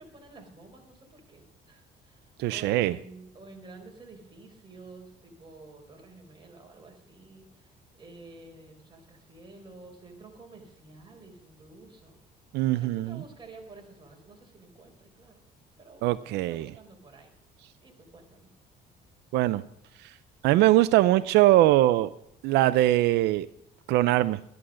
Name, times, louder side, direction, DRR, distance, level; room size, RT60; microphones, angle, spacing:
voice 1, 0.0-12.2 12.8-15.4 15.8-17.3 17.8-18.5, right 3 dB, 30° right, 2 dB, 4.4 m, -50 dB
voice 2, 2.4-3.0 12.5-13.2 16.0-16.7 19.3-19.6 20.4-22.1 22.4-23.5 23.9-24.4, right 15 dB, 85° right, 14 dB, 0.5 m, -22 dB
13.0 x 11.0 x 6.3 m, 0.78 s
cardioid pair, 110°, 17 cm